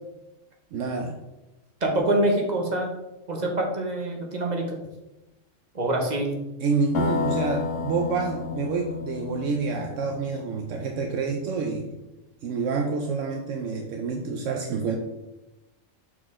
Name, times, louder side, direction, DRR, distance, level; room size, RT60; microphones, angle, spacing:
voice 1, 0.7-1.2 6.6-11.9 12.4-15.0, right 4 dB, 75° right, 2 dB, 1.0 m, -28 dB
voice 2, 1.8-2.9 3.3-4.8 5.7-6.4, right 1 dB, 35° right, 1 dB, 1.0 m, -25 dB
sound 1, 6.9-10.7, left 5 dB, 75° left, 1.2 m, -31 dB
6.0 x 4.5 x 3.6 m, 0.99 s
omnidirectional pair, 1.3 m